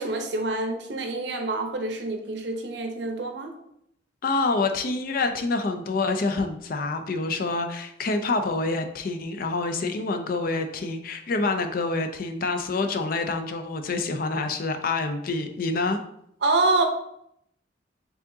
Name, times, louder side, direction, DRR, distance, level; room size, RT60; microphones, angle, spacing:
voice 1, 0.0-3.5 16.4-16.8, right 2 dB, 60° right, 4 dB, 0.7 m, -26 dB
voice 2, 4.2-16.0, left 3 dB, 50° left, 7 dB, 0.4 m, -27 dB
4.7 x 3.7 x 2.7 m, 0.73 s
head